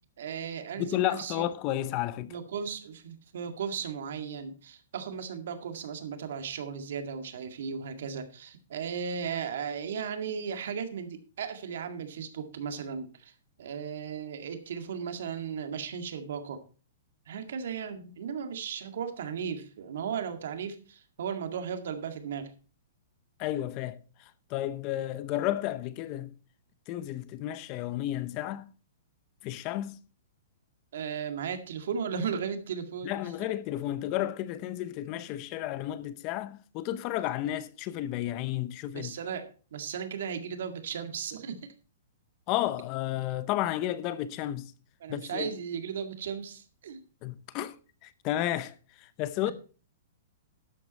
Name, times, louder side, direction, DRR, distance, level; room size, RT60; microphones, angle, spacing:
voice 1, 0.2-1.4 2.3-13.3 13.6-16.6 17.3-22.5 30.9-33.3 38.9-41.7 45.0-47.0, right 7 dB, 65° right, 1.9 m, -36 dB
voice 2, 0.8-2.3 23.4-24.0 24.5-26.3 26.9-28.7 29.4-30.0 33.0-39.1 42.5-44.7 45.1-45.5 47.2-47.7 48.0-48.7 49.0-49.5, left 13 dB, 25° left, 0.7 m, -32 dB
12.5 x 8.6 x 4.1 m
hypercardioid pair, 170°, 0 cm